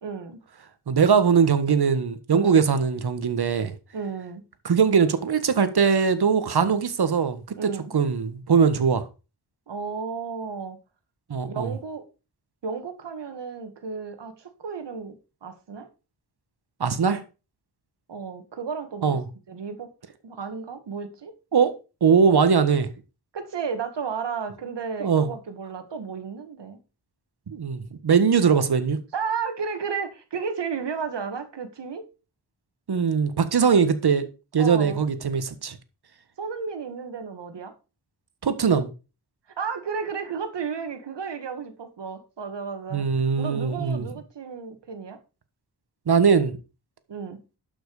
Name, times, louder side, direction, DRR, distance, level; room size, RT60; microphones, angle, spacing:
voice 1, 0.0-0.4 2.3-2.6 3.9-4.4 7.6-7.9 9.7-10.8 11.4-12.0 12.6-15.9 18.1-19.2 19.5-19.9 20.2-21.3 23.3-26.8 29.1-32.1 34.6-35.0 36.4-37.7 39.6-43.1 43.4-45.2 47.1-47.4, right 5 dB, 85° right, 2.1 m, -33 dB
voice 2, 0.9-3.7 4.6-9.1 11.3-11.7 16.8-17.2 19.0-19.2 21.5-21.7 22.0-22.9 25.0-25.3 27.5-29.0 32.9-34.3 34.5-35.8 38.4-38.9 42.9-44.1 46.1-46.5, right 6 dB, 65° right, 1.6 m, -21 dB
12.0 x 6.2 x 4.9 m
wide cardioid pair, 85°, 41 cm